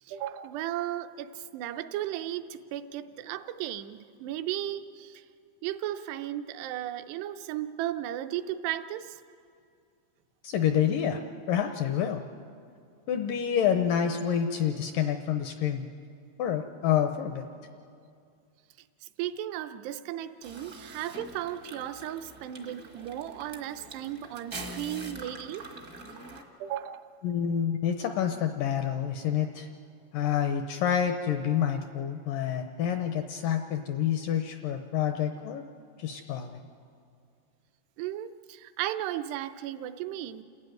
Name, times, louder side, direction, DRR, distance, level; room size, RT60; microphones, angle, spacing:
voice 1, 0.0-5.2 5.6-9.2 19.0-25.7 26.6-27.2 38.0-40.4, right 12 dB, 80° right, 10 dB, 2.8 m, -35 dB
voice 2, 10.4-11.2 11.5-12.3 13.1-15.9 16.4-17.5 27.2-29.7 30.1-35.6 36.0-36.6, left 9 dB, 80° left, 7 dB, 2.0 m, -28 dB
sound 1, 20.4-26.4, right 2 dB, 65° right, 0.8 m, -44 dB
29.0 x 13.5 x 9.3 m, 2.4 s
omnidirectional pair, 4.8 m